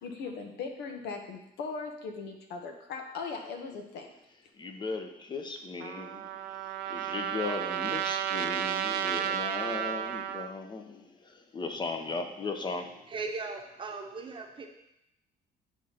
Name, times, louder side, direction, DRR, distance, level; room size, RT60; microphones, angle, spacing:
voice 1, 0.0-4.1, left 4 dB, 80° left, 3 dB, 1.1 m, -39 dB
voice 2, 4.6-6.3 6.9-12.9, left 4 dB, 25° left, 6 dB, 0.8 m, -37 dB
Trumpet, 5.8-10.5, right 10 dB, 85° right, 0.5 m, -32 dB
voice 3, 13.1-14.7, right 3 dB, 30° right, 2 dB, 0.9 m, -38 dB
10.5 x 3.7 x 2.9 m, 0.83 s
cardioid pair, 110°, 17 cm